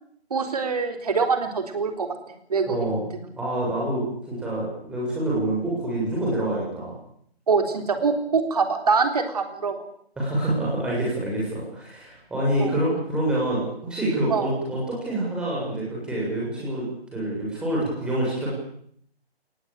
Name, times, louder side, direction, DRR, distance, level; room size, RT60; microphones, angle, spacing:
voice 1, 0.3-2.1 2.5-3.0 7.5-9.8 12.6-12.7 14.3-14.5, right 5 dB, 35° right, 7 dB, 3.8 m, -24 dB
voice 2, 2.7-3.1 3.4-6.9 10.2-18.5, right 1 dB, 5° right, -5 dB, 7.6 m, -26 dB
22.0 x 19.5 x 8.9 m, 0.64 s
figure-of-eight pair, 155°, 32 cm